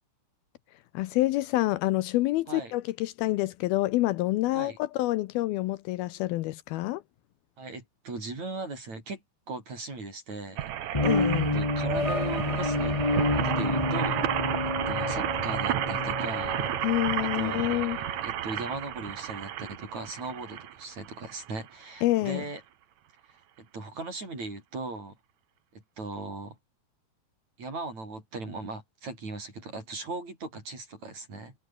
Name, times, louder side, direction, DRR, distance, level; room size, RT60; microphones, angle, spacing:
voice 1, 0.9-7.0 11.0-11.6 16.8-18.0 22.0-22.4, left 17 dB, 80° left, 2.5 m, -27 dB
voice 2, 7.6-10.7 11.5-13.0 13.3-14.3 14.6-16.7 17.2-22.6 23.3-25.2 25.7-26.6 27.6-31.6, right 3 dB, 45° right, 9.2 m, -38 dB
sound 1, 10.6-21.7 22.3-22.4 22.6-22.7, right 11 dB, 60° right, 2.1 m, -32 dB
sound 2, 10.9-18.3, left 2 dB, 20° left, 0.7 m, -29 dB
omnidirectional pair, 4.6 m